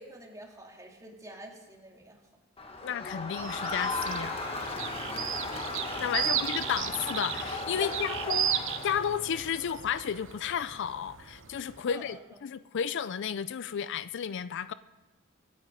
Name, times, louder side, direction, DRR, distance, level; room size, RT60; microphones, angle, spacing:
voice 1, 0.0-2.2 5.0-5.7 6.2-6.4 7.8-8.4 11.9-12.2, right 1 dB, 15° right, 1 dB, 2.2 m, -46 dB
Crowd, 2.6-9.4, left 3 dB, 30° left, 1.6 m, -36 dB
voice 2, 2.8-4.4 6.0-8.5 8.8-14.7, left 8 dB, 60° left, 15 dB, 0.4 m, -32 dB
sound 1, 3.4-11.8, right 9 dB, 65° right, 0.9 m, -35 dB
24.0 x 8.4 x 5.0 m, 1.1 s
head